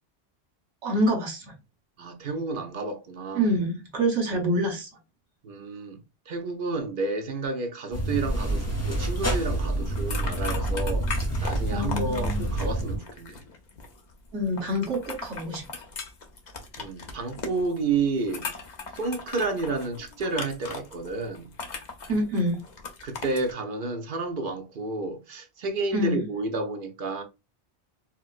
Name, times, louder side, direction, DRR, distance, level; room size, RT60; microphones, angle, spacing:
voice 1, 0.8-1.4 3.3-4.9 11.7-12.5 14.3-15.6 22.1-22.6 25.9-26.2, equal, 85° right, 1.4 m, -26 dB
voice 2, 2.0-3.5 5.4-6.0 6.3-11.1 11.4-13.4 16.8-18.5 18.9-21.5 23.0-27.2, right 3 dB, 55° right, 0.8 m, -30 dB
sound 1, 7.9-13.0, right 1 dB, 15° left, 0.8 m, -28 dB
sound 2, 9.8-23.5, left 4 dB, 50° left, 0.7 m, -39 dB
4.3 x 2.1 x 2.4 m
omnidirectional pair, 1.1 m